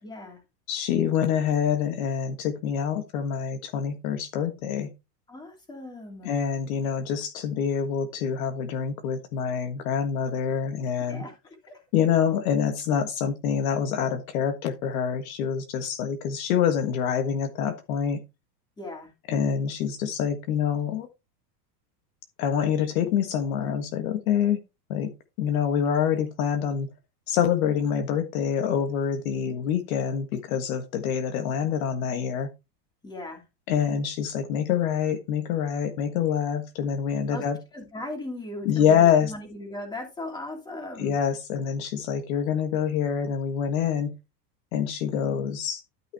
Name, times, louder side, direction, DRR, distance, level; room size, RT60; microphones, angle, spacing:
voice 1, 0.0-0.4 5.3-6.4 11.0-11.8 18.8-19.1 33.0-33.4 37.3-37.4 37.7-41.1, left 1 dB, 10° left, 3 dB, 2.7 m, -38 dB
voice 2, 0.7-4.9 6.2-11.2 11.9-18.2 19.3-21.1 22.4-24.6 24.9-25.1 25.4-26.9 27.3-32.5 33.7-37.6 38.6-39.3 41.0-44.1 44.7-45.8, left 8 dB, 55° left, 7 dB, 1.6 m, -26 dB
12.5 x 5.8 x 3.4 m, 0.25 s
supercardioid pair, 165°, 50 cm